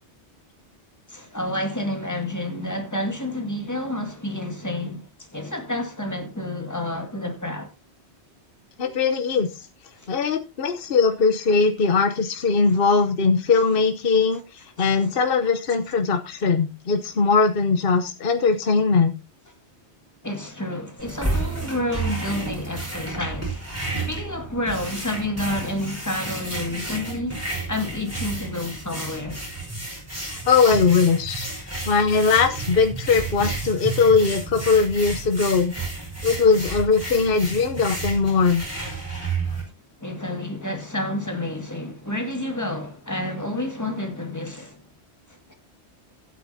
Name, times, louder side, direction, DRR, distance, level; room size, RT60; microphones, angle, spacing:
voice 1, 1.1-7.7 8.8-8.9 10.0-10.1 12.6-12.8 14.8-15.2 20.2-23.7 24.1-29.4 40.0-44.8 45.3-45.5, left 1 dB, 15° left, 2.0 m, -30 dB
voice 2, 8.8-9.5 10.1-19.1 30.3-35.7 36.2-38.6, left 4 dB, 55° left, 1.1 m, -20 dB
sound 1, 21.0-39.6, right 3 dB, 15° right, 4.9 m, -31 dB
16.0 x 9.2 x 2.8 m
omnidirectional pair, 1.2 m